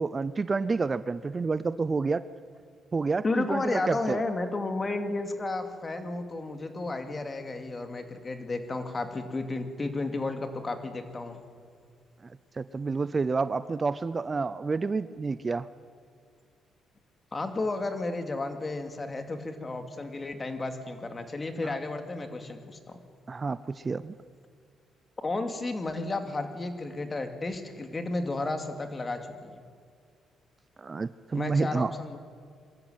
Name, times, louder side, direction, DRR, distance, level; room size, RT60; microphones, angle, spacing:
voice 1, 0.0-2.2 2.9-4.2 12.6-15.7 23.3-24.1 30.8-31.9, right 4 dB, 30° right, 15 dB, 0.6 m, -29 dB
voice 2, 3.2-11.4 17.3-23.0 25.2-29.6 31.3-32.2, left 2 dB, 30° left, 7 dB, 2.5 m, -32 dB
23.0 x 14.0 x 9.3 m, 2.1 s
cardioid pair, 90°, 0 cm